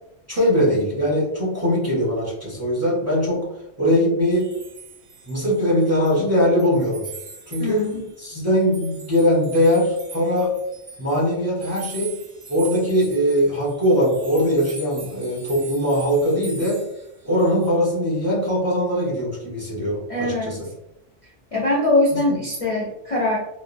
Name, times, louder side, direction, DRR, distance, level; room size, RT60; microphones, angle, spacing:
voice 1, 0.3-3.5 3.8-4.5 5.3-7.0 7.5-7.8 8.2-10.5 11.0-12.1 12.5-16.8 17.2-20.7 22.1-22.4, equal, 15° right, -6 dB, 0.8 m, -21 dB
sound 1, 4.3-6.1 6.4-17.7, right 4 dB, 50° right, 0.6 m, -42 dB
voice 2, 7.6-8.0 20.1-20.6 21.5-23.4, left 2 dB, 45° left, -4 dB, 0.5 m, -22 dB
3.0 x 2.0 x 2.5 m, 0.86 s
omnidirectional pair, 1.2 m